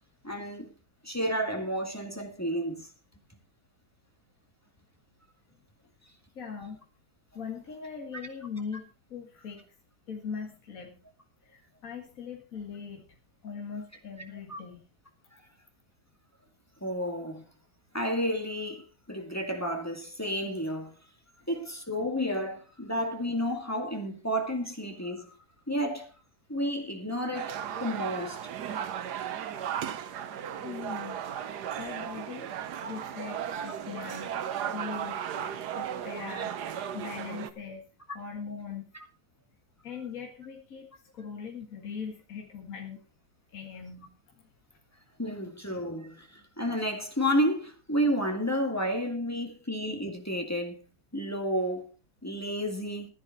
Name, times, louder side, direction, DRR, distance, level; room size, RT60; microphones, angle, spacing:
voice 1, 0.2-0.7 1.0-2.9 14.5-14.6 15.3-15.4 16.8-17.4 17.9-18.8 19.1-20.9 21.5-25.3 25.7-26.1 26.5-28.5 33.6-34.0 45.2-50.8 51.1-51.9 52.2-53.1, equal, 10° left, 2.0 m, -31 dB
voice 2, 6.4-6.8 7.3-9.6 10.1-11.0 11.4-13.2 13.4-14.8 30.6-31.2 31.7-32.5 32.8-35.2 35.7-36.5 36.9-37.9 38.1-38.8 39.8-40.9 41.1-43.0 43.5-44.4, left 6 dB, 55° left, 2.1 m, -40 dB
sound 1, 27.3-37.5, right 9 dB, 80° right, 1.5 m, -36 dB
15.0 x 10.5 x 4.0 m
omnidirectional pair, 1.7 m